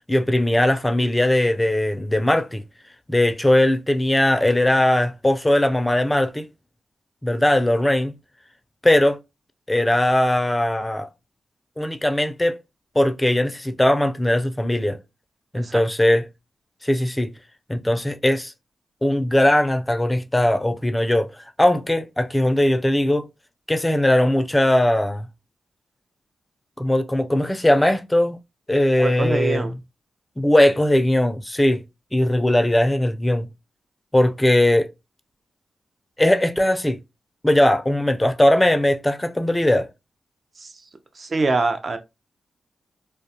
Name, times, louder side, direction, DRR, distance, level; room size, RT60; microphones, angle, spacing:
voice 1, 0.1-2.6 3.1-6.5 7.2-8.1 8.8-9.2 9.7-11.1 11.8-12.5 13.0-15.0 15.5-16.3 16.8-17.3 17.7-18.5 19.0-21.3 21.6-23.3 23.7-25.3 26.8-28.4 28.7-29.7 30.4-31.8 32.1-33.5 34.1-34.9 36.2-37.0 37.4-39.9, left 1 dB, 15° left, 0.4 m, -19 dB
voice 2, 29.0-29.7 40.6-40.7 41.2-42.0, right 3 dB, 50° right, 0.4 m, -24 dB
2.3 x 2.2 x 2.7 m
supercardioid pair, 50°, 0 cm